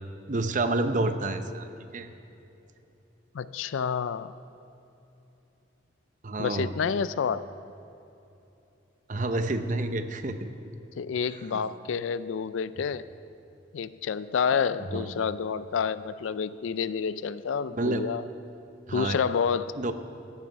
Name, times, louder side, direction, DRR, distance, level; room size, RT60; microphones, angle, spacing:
voice 1, 0.3-1.7 1.9-2.1 6.2-6.7 9.1-10.5 11.5-11.6 14.9-15.1 17.7-18.0 18.9-19.2 19.8-19.9, right 2 dB, 40° right, 8 dB, 0.7 m, -29 dB
voice 2, 3.3-4.3 6.4-7.5 11.0-13.0 13.7-18.2 18.9-19.7, left 6 dB, 90° left, 16 dB, 0.4 m, -29 dB
16.5 x 11.0 x 5.4 m, 2.9 s
head